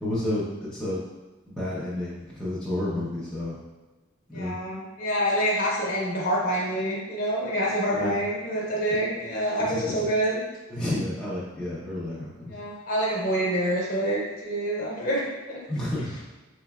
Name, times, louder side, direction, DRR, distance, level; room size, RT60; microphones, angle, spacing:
voice 1, 0.0-1.0 1.5-3.6 4.3-4.6 7.9-8.1 8.9-9.0 9.7-10.1 10.7-12.6 15.7-16.2, left 1 dB, 5° left, -10 dB, 0.6 m, -31 dB
voice 2, 4.3-10.4 12.5-15.6, equal, 40° left, -4 dB, 1.0 m, -27 dB
4.4 x 3.0 x 2.3 m, 1.2 s
head